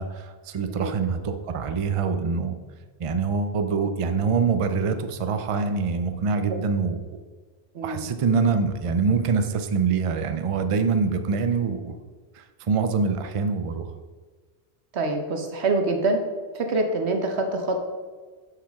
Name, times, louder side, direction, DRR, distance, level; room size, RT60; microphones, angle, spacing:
voice 1, 0.0-2.6 3.0-7.2 7.8-12.0 12.3-13.9, right 5 dB, 40° right, 8 dB, 0.5 m, -25 dB
voice 2, 7.7-8.1 14.9-16.2 16.5-17.8, right 2 dB, 90° right, 5 dB, 1.2 m, -25 dB
7.4 x 6.8 x 3.6 m, 1.5 s
omnidirectional pair, 1.1 m